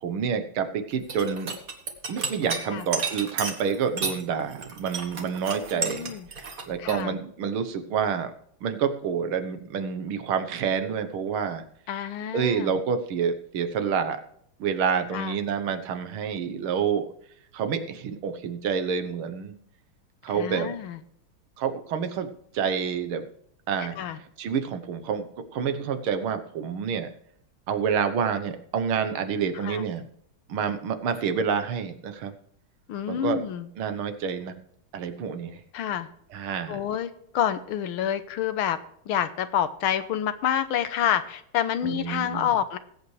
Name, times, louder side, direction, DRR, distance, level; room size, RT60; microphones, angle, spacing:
voice 1, 0.0-1.5 2.1-8.3 8.6-11.6 12.3-14.2 14.6-17.1 17.5-19.5 20.2-20.7 21.6-22.3 22.5-23.3 23.7-24.0 24.4-25.3 25.5-27.1 27.7-30.0 30.5-32.3 33.1-33.4 33.8-34.6 34.9-35.6 36.3-36.8 41.8-42.5, right 6 dB, 80° right, 9 dB, 2.0 m, -28 dB
sound 1, 0.9-4.2 4.5-7.0, right 4 dB, 45° right, 1.9 m, -32 dB
voice 2, 5.7-6.3 6.8-7.2 11.9-12.7 15.1-15.3 20.3-21.0 24.0-24.2 29.6-29.8 32.9-33.7 35.7-36.1 36.7-38.8 39.1-42.8, left 10 dB, 85° left, 12 dB, 1.7 m, -28 dB
20.0 x 8.3 x 3.3 m, 0.70 s
omnidirectional pair, 2.3 m